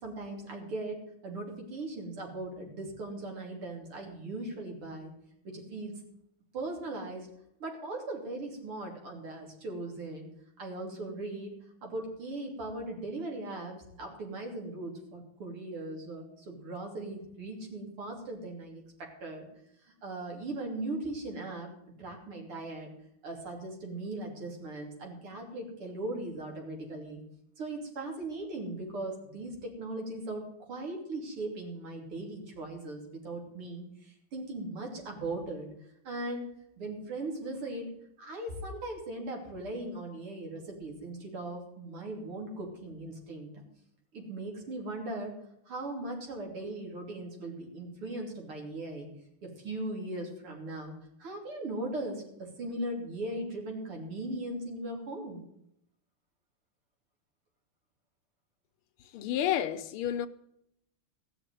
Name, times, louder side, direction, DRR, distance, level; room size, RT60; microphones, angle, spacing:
voice 1, 0.0-5.1 5.4-6.0 6.5-7.3 7.6-10.3 10.6-11.5 11.8-19.5 19.8-21.7 22.0-22.9 23.2-27.2 27.6-35.7 36.0-36.5 36.8-37.9 38.2-43.6 44.1-45.3 45.7-49.1 49.4-50.9 51.2-55.4, right 2 dB, 85° right, 3.9 m, -39 dB
voice 2, 59.1-60.3, left 10 dB, 85° left, 1.7 m, -30 dB
16.0 x 6.6 x 9.2 m
omnidirectional pair, 2.3 m